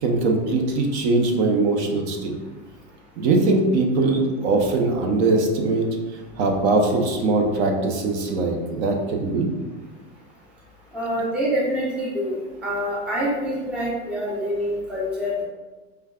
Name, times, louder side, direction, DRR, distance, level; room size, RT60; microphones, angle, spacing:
voice 1, 0.0-2.4 3.2-5.9 6.4-9.5, right 3 dB, 60° right, 2 dB, 0.7 m, -21 dB
voice 2, 10.9-15.4, equal, 5° right, -5 dB, 0.3 m, -26 dB
5.0 x 2.3 x 2.3 m, 1.3 s
supercardioid pair, 135°, 38 cm